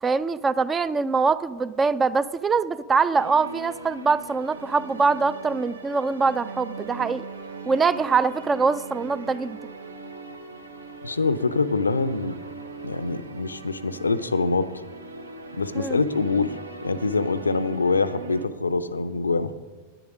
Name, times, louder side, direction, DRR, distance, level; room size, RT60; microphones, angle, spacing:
voice 1, 0.0-7.2 7.7-9.6 15.7-16.0, right 4 dB, 15° right, 17 dB, 0.3 m, -23 dB
sound 1, 3.1-18.5, right 3 dB, 75° right, 0.8 m, -40 dB
voice 2, 11.0-12.4 12.8-14.7 15.5-16.6 16.8-19.5, left 3 dB, 80° left, 13 dB, 0.5 m, -24 dB
10.0 x 9.9 x 5.1 m, 1.3 s
figure-of-eight pair, 90°, 0 cm